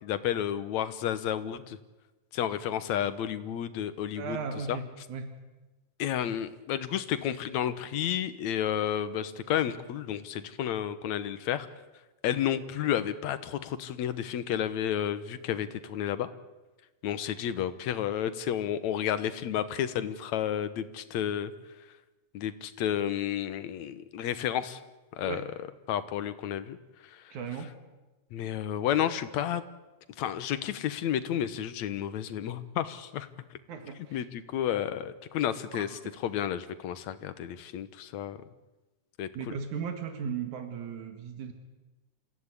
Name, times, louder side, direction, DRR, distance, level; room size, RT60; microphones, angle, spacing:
voice 1, 0.0-1.8 2.3-4.4 4.7-4.8 6.0-11.7 12.2-16.3 17.0-21.5 22.3-24.8 25.1-25.4 25.9-26.8 27.0-27.4 28.3-29.6 30.2-33.3 34.1-38.4 39.2-39.6, left 10 dB, 70° left, 13 dB, 2.3 m, -31 dB
voice 2, 4.2-5.3 25.2-25.5 27.3-27.7 33.7-34.2 35.7-35.9 39.3-41.5, right 6 dB, 80° right, 7 dB, 3.1 m, -36 dB
27.5 x 16.0 x 9.9 m, 1.1 s
omnidirectional pair, 3.5 m